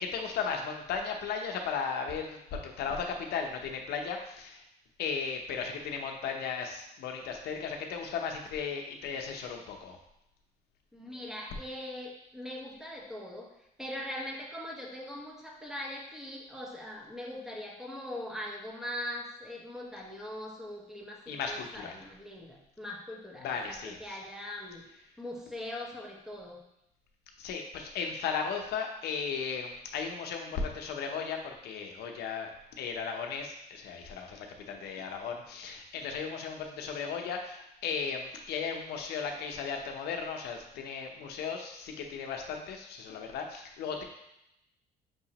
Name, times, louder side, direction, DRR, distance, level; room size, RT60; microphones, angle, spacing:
voice 1, 0.0-4.6 5.0-10.0 21.3-22.0 23.4-24.2 27.4-44.0, left 6 dB, 75° left, 3 dB, 0.7 m, -36 dB
voice 2, 10.9-13.5 13.8-23.7 24.0-24.9 25.2-26.6, left 1 dB, 5° right, -2 dB, 1.0 m, -41 dB
6.1 x 2.9 x 2.9 m, 0.83 s
cardioid pair, 110°, 17 cm